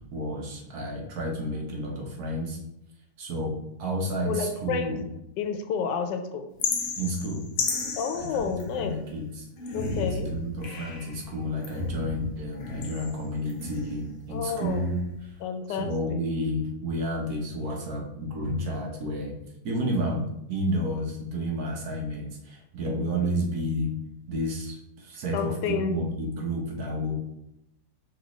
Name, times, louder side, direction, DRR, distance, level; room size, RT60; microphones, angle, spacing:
voice 1, 0.0-2.6 3.2-5.0 7.0-7.4 8.1-9.5 9.9-15.0 15.2-15.3 15.7-19.4 19.6-23.9 24.3-27.2, equal, 60° right, 0 dB, 1.3 m, -31 dB
voice 2, 4.2-5.0 5.4-6.5 8.0-9.0 9.7-10.3 14.3-14.9 15.4-16.2 25.3-26.0, left 6 dB, 85° left, 7 dB, 1.2 m, -30 dB
sound 1, 6.6-9.0 9.6-11.2 11.6-14.1 14.5-15.2, left 4 dB, 60° left, 1.1 m, -34 dB
5.7 x 3.1 x 3.0 m, 0.84 s
omnidirectional pair, 1.9 m